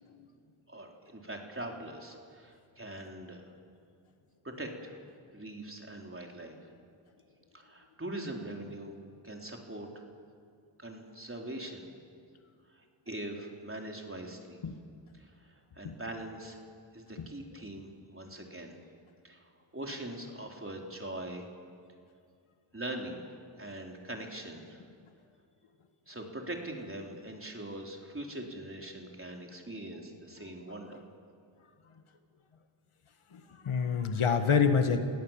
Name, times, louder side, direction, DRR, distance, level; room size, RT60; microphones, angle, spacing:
voice 1, 0.7-3.5 4.4-4.9 5.3-6.7 7.5-9.0 9.2-9.9 10.8-11.8 12.7-14.6 15.1-16.6 16.9-18.8 19.2-21.5 22.7-23.3 23.6-24.8 26.1-31.1, right 1 dB, 25° right, 1 dB, 4.0 m, -42 dB
voice 2, 33.3-35.0, left 6 dB, 80° left, 7 dB, 1.6 m, -27 dB
29.5 x 17.0 x 7.4 m, 2.3 s
cardioid pair, 45°, 50 cm